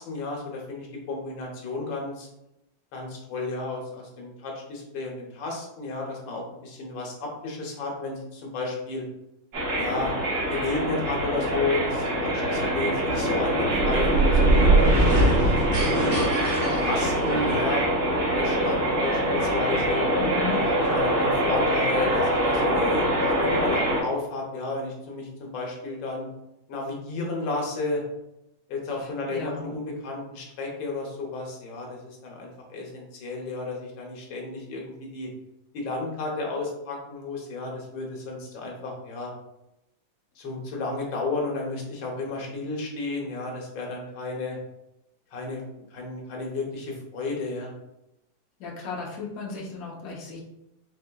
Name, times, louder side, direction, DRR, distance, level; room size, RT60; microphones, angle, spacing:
voice 1, 0.0-2.3 2.9-9.1 9.8-10.1 10.5-15.5 15.9-16.2 16.8-17.8 18.3-20.0 20.5-26.3 26.7-28.0 28.7-35.3 35.7-39.3 40.4-44.6 45.3-47.7, left 3 dB, 90° left, 0 dB, 1.6 m, -32 dB
sound 1, 9.5-24.0, equal, 60° right, 1.7 m, -24 dB
sound 2, 13.6-17.7, right 2 dB, 90° right, 2.0 m, -22 dB
voice 2, 20.2-20.6 29.0-29.7 48.6-50.4, left 4 dB, 55° left, -3 dB, 1.2 m, -35 dB
4.6 x 3.3 x 2.2 m, 0.87 s
omnidirectional pair, 2.0 m